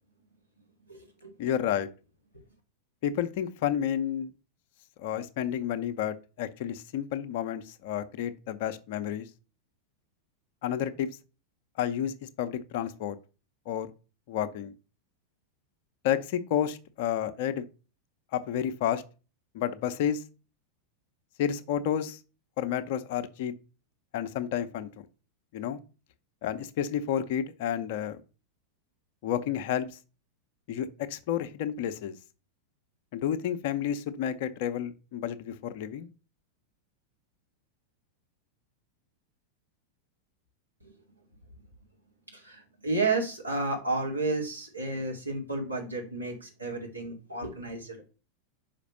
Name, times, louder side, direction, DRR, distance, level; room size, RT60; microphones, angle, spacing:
voice 1, 0.9-1.3 40.8-40.9 42.3-48.1, right 3 dB, 85° right, 2.4 m, -32 dB
voice 2, 1.4-1.9 3.0-4.3 5.0-9.3 10.6-11.1 11.8-13.2 13.7-13.9 14.3-14.7 16.0-17.6 18.3-19.0 19.5-20.2 21.4-22.2 22.6-23.5 24.1-25.1 25.5-25.8 26.4-28.2 29.2-29.9 30.7-32.2 33.1-36.1, left 9 dB, 50° left, 0.8 m, -30 dB
5.9 x 5.0 x 6.6 m
figure-of-eight pair, 90°, 0 cm